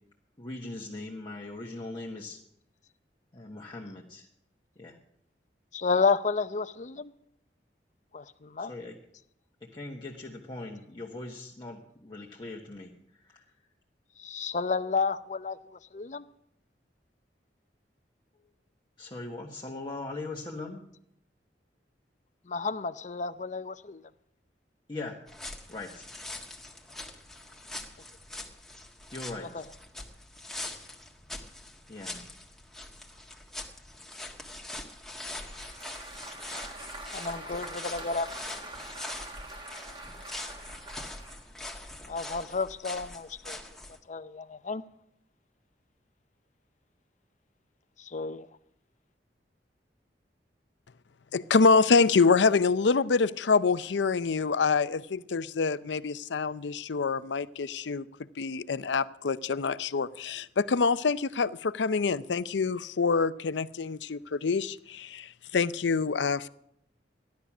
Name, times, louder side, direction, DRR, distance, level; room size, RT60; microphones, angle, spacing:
voice 1, 0.4-2.4 3.3-4.3 4.8-5.0 8.6-9.0 9.6-13.5 18.3-18.5 19.0-20.8 24.9-25.2 25.7-26.1 29.1-29.7 31.9-32.3, left 2 dB, 25° left, 1.4 m, -40 dB
voice 2, 5.7-7.1 8.1-8.7 14.2-16.3 22.5-24.0 29.4-29.6 37.1-38.3 42.1-43.6 44.1-44.8 48.0-48.5, left 4 dB, 45° left, 0.6 m, -31 dB
sound 1, 25.3-44.0, left 2 dB, ahead, 1.6 m, -43 dB
Applause, 35.4-41.4, right 2 dB, 30° right, 1.7 m, -45 dB
voice 3, 51.3-66.5, left 4 dB, 90° left, 0.6 m, -26 dB
15.5 x 11.5 x 6.1 m
head